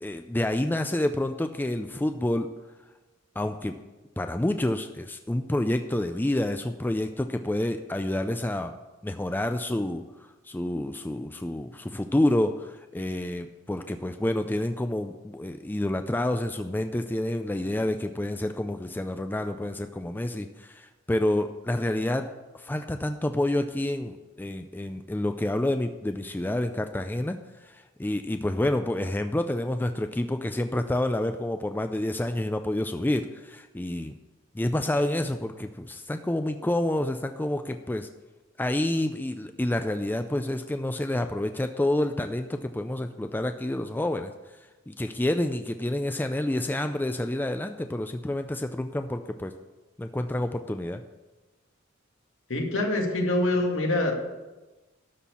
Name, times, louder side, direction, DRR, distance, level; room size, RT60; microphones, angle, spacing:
voice 1, 0.0-2.5 3.4-3.8 4.2-8.7 9.0-10.0 10.4-22.3 22.5-34.2 34.5-38.1 38.6-44.3 44.9-49.5 50.0-51.0, left 1 dB, 10° left, 7 dB, 0.4 m, -28 dB
voice 2, 52.5-54.1, left 1 dB, 70° left, 1 dB, 2.1 m, -25 dB
12.5 x 4.4 x 8.4 m, 1.1 s
head